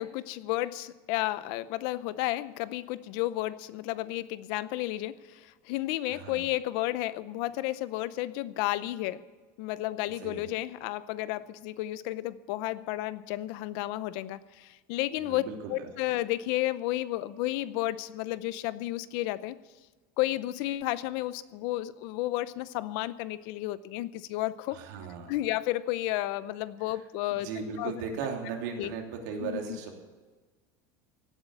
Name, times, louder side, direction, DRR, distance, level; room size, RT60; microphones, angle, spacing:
voice 1, 0.0-9.2 9.6-15.4 15.7-19.6 20.2-24.8 25.3-27.5 27.8-27.9 28.8-28.9 29.4-29.8, left 16 dB, 55° left, 16 dB, 0.6 m, -32 dB
voice 2, 6.1-6.5 10.2-10.5 15.2-15.9 24.7-25.4 26.9-27.0 27.3-30.0, right 5 dB, 85° right, 2 dB, 3.0 m, -37 dB
17.0 x 8.2 x 8.2 m, 1.3 s
cardioid pair, 175°, 9 cm